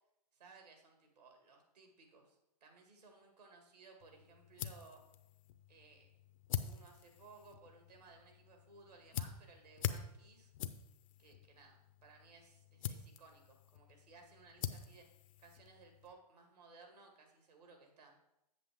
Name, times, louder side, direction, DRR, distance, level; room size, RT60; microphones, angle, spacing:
voice 1, 0.3-5.0 5.7-6.1 6.6-10.5 11.2-15.0 15.4-18.1, right 4 dB, 80° right, 3 dB, 2.0 m, -60 dB
sound 1, 4.0-16.1, left 10 dB, 55° left, 0.6 m, -46 dB
7.8 x 7.3 x 3.5 m, 0.89 s
hypercardioid pair, 115°, 20 cm